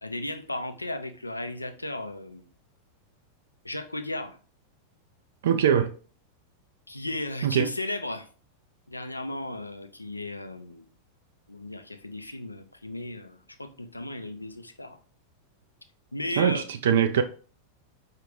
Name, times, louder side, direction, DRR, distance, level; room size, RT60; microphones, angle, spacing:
voice 1, 0.0-2.5 3.6-4.4 6.9-8.3 8.9-10.8 11.5-15.0 16.1-16.6, left 1 dB, 85° left, 0.4 m, -35 dB
voice 2, 5.4-5.9 7.4-7.7 16.4-17.2, right 8 dB, 60° right, 0.3 m, -22 dB
4.9 x 2.4 x 3.2 m
figure-of-eight pair, 90°, 0 cm